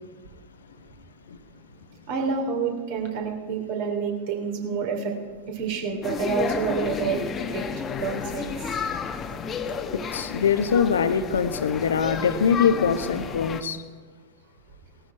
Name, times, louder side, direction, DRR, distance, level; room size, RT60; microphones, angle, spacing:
voice 1, 2.1-5.1 5.5-7.2 7.5-7.6 8.0-8.7, right 5 dB, 50° right, 3 dB, 2.9 m, -28 dB
sound 1, 6.0-13.6, left 6 dB, 25° left, 0.9 m, -32 dB
voice 2, 9.9-13.8, left 7 dB, 65° left, 12 dB, 0.9 m, -23 dB
18.5 x 12.5 x 4.6 m, 1.4 s
figure-of-eight pair, 90°, 0 cm